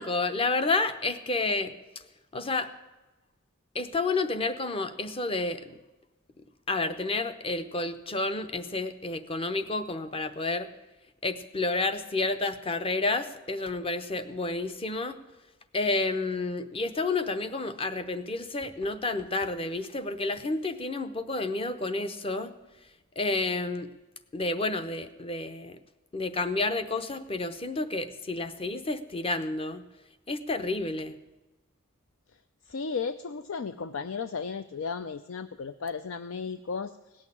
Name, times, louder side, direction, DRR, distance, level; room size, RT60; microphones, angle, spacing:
voice 1, 0.0-1.7 2.3-2.7 3.7-5.7 6.7-10.7 11.2-15.2 15.7-22.5 23.2-23.9 24.3-25.8 26.1-29.8 30.3-31.2, left 3 dB, 25° left, 10 dB, 0.8 m, -30 dB
voice 2, 32.7-37.3, left 5 dB, 70° left, 12 dB, 0.5 m, -35 dB
17.5 x 6.5 x 9.9 m, 1.1 s
head